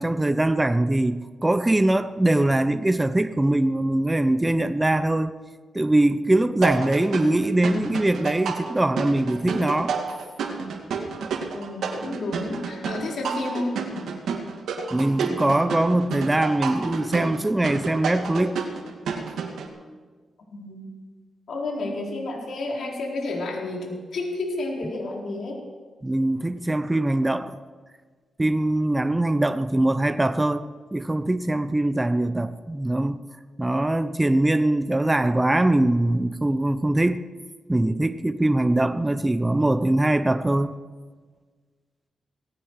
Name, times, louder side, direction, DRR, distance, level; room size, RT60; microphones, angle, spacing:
voice 1, 0.0-5.3 5.7-10.0 14.9-18.6 26.0-27.6 28.4-30.6 30.9-33.2 33.6-37.2 37.7-40.8, right 1 dB, 15° right, 0.7 m, -22 dB
sound 1, 6.6-19.7, right 5 dB, 85° right, 2.1 m, -30 dB
voice 2, 11.5-13.7 20.5-20.9 21.5-25.6, left 2 dB, 70° left, 4.5 m, -31 dB
18.0 x 16.0 x 4.9 m
cardioid pair, 80°, 0 cm